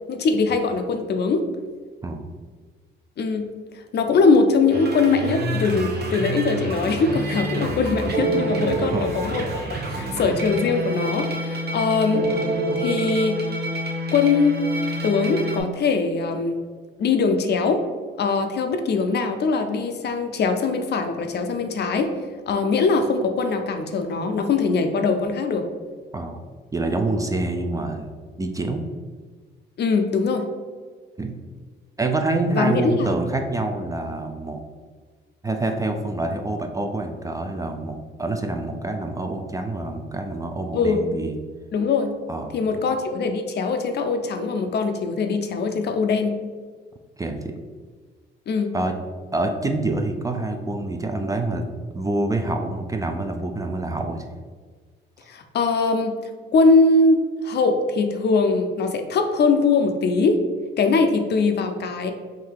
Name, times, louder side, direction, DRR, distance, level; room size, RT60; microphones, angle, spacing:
voice 1, 0.1-1.5 3.2-3.5 3.9-12.3 12.8-13.4 14.1-14.6 15.0-16.6 17.0-17.8 18.2-22.1 22.5-25.7 29.8-30.5 32.5-33.2 40.7-41.0 41.7-42.1 42.5-46.3 48.5-48.7 55.3-56.1 56.5-60.4 60.8-62.1, left 4 dB, 55° left, 6 dB, 0.5 m, -21 dB
sound 1, 4.7-15.6, right 1 dB, 55° right, 1.0 m, -27 dB
voice 2, 8.8-9.1 26.1-26.4 26.7-28.1 28.4-28.9 31.2-31.4 32.0-34.6 35.4-41.4 42.3-42.5 47.2-47.5 48.7-48.9 49.3-51.6 51.9-54.2, right 2 dB, 15° right, 4 dB, 0.4 m, -26 dB
3.8 x 2.7 x 4.6 m, 1.5 s
cardioid pair, 90°, 20 cm